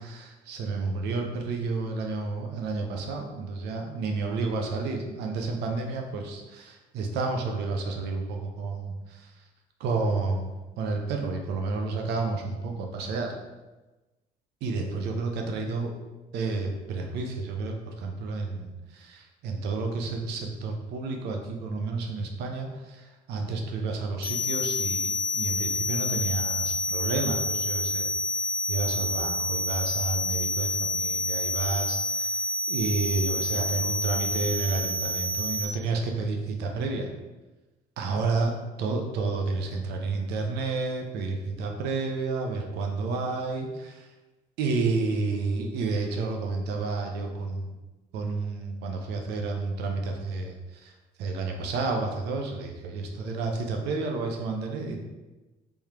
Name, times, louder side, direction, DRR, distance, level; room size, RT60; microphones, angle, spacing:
voice 1, 0.0-9.3 9.8-13.3 14.6-15.9 16.3-28.1 28.7-37.1 38.0-44.1 44.6-47.7 48.1-50.9 51.2-55.0, right 3 dB, 80° right, 3 dB, 0.7 m, -30 dB
sound 1, 24.2-35.6, left 3 dB, 70° left, 1.1 m, -28 dB
3.4 x 3.1 x 3.3 m, 1.1 s
cardioid pair, 110°, 17 cm